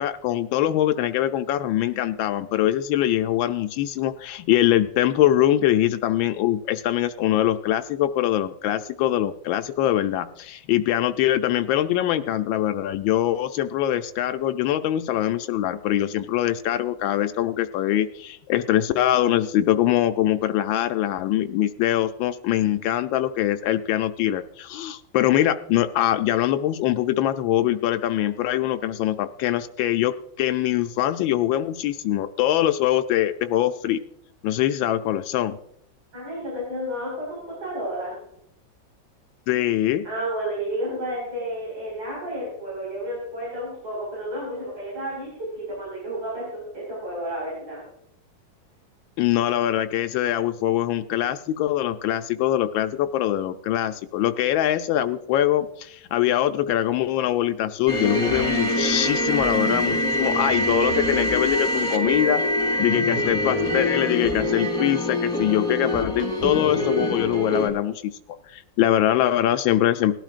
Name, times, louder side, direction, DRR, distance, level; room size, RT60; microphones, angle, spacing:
voice 1, 0.0-34.0 34.4-35.6 39.5-40.0 49.2-62.4 62.8-68.1 68.5-70.1, left 12 dB, 90° left, 8 dB, 1.4 m, -23 dB
voice 2, 36.1-38.2 40.0-47.8, right 1 dB, 85° right, -6 dB, 5.9 m, -31 dB
sound 1, 57.9-67.7, left 1 dB, ahead, 3.1 m, -24 dB
19.0 x 12.5 x 2.5 m, 0.75 s
omnidirectional pair, 2.1 m